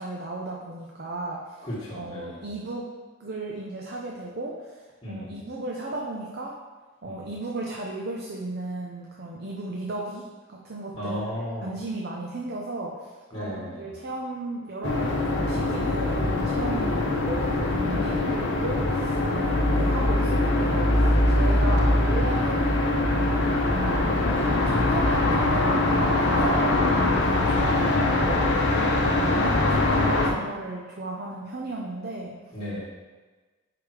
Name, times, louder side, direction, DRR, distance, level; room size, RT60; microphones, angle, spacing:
voice 1, 0.0-1.7 1.9-2.9 3.2-6.6 7.0-11.3 11.6-13.5 13.8-22.7 22.9-28.5 29.2-32.4, right 2 dB, 50° right, -2 dB, 0.7 m, -35 dB
voice 2, 1.6-2.4 5.0-5.4 7.0-7.2 10.9-11.7 13.3-13.8 16.7-17.1 17.8-18.4 19.4-19.8 28.7-29.2 32.5-32.8, left 1 dB, 25° left, -10 dB, 1.6 m, -35 dB
sound 1, 14.8-30.3, left 2 dB, 55° left, 0.9 m, -23 dB
5.2 x 5.0 x 4.8 m, 1.3 s
head